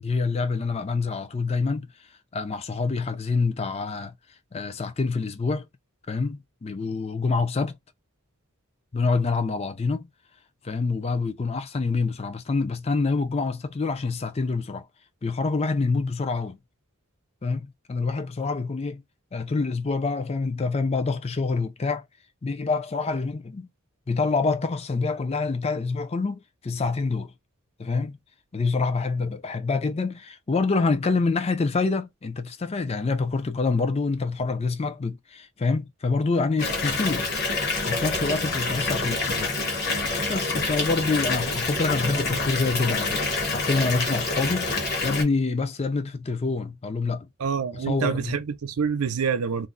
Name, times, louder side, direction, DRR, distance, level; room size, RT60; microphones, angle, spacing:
voice 1, 0.0-1.9 2.3-4.1 4.5-5.7 6.1-7.8 8.9-10.1 10.6-14.9 15.2-16.6 17.4-19.0 19.3-22.0 22.4-23.7 24.1-27.3 27.8-28.1 28.5-37.3 37.9-39.5 39.9-43.2 43.5-44.7 45.0-47.3 47.7-48.3, left 4 dB, 30° left, 0.4 m, -26 dB
Water tap faucet / Bathtub (filling or washing) / Fill (with liquid), 36.6-45.2, left 3 dB, 50° left, 1.1 m, -27 dB
voice 2, 47.4-49.7, right 6 dB, 90° right, 0.6 m, -26 dB
2.5 x 2.0 x 3.8 m
head